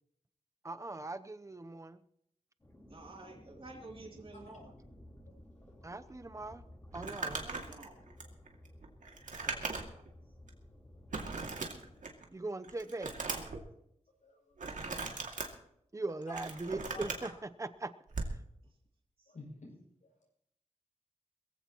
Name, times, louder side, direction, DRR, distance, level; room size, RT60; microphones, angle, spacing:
voice 1, 0.6-2.0 5.8-6.6 6.9-7.4 9.4-9.6 12.3-13.1 15.9-17.9, right 2 dB, 25° right, 11 dB, 0.8 m, -40 dB
sound 1, 2.6-12.0, left 1 dB, 25° left, 5.0 m, -56 dB
voice 2, 2.9-4.7 7.4-8.0 14.7-15.0 19.2-19.3, right 2 dB, 45° right, -2 dB, 3.0 m, -51 dB
Crumpling crinkling, 6.9-10.1 10.5-10.6 11.1-12.2 12.6-13.6 14.6-15.5 16.1-17.3 18.1-18.4, right 4 dB, 90° right, 2.4 m, -39 dB
voice 3, 14.2-14.5 16.3-16.4 16.9-17.3 19.3-19.8 20.0-20.3, left 2 dB, 85° left, -3 dB, 6.7 m, -51 dB
21.5 x 15.5 x 3.0 m, 0.74 s
wide cardioid pair, 105°, 13 cm